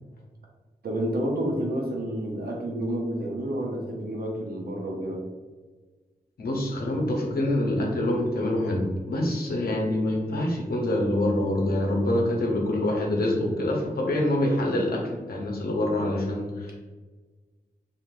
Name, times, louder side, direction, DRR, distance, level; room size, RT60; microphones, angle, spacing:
voice 1, 0.8-5.2, right 1 dB, 75° right, 0 dB, 0.7 m, -29 dB
voice 2, 6.4-15.0 15.3-16.8, left 1 dB, 80° left, -1 dB, 0.7 m, -25 dB
3.0 x 2.4 x 2.4 m, 1.3 s
cardioid pair, 60°, 16 cm